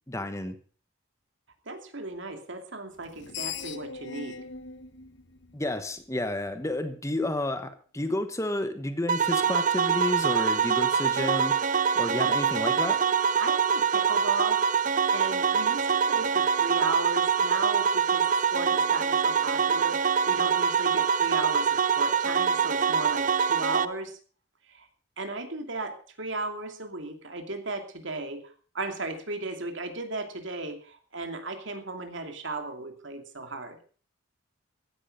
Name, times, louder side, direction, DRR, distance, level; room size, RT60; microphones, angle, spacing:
voice 1, 0.1-0.6 5.5-11.5 11.9-13.0, left 1 dB, 15° left, 9 dB, 1.1 m, -31 dB
voice 2, 1.7-4.4 12.2-12.3 13.4-14.6 15.1-18.2 18.5-24.2 24.7-24.9 25.2-33.8, right 2 dB, 65° right, 6 dB, 2.7 m, -35 dB
Screech, 3.0-6.2, left 6 dB, 60° left, 1.2 m, -40 dB
sound 1, 9.1-23.9, right 7 dB, 40° right, 0.6 m, -24 dB
15.5 x 11.0 x 5.3 m, 0.41 s
head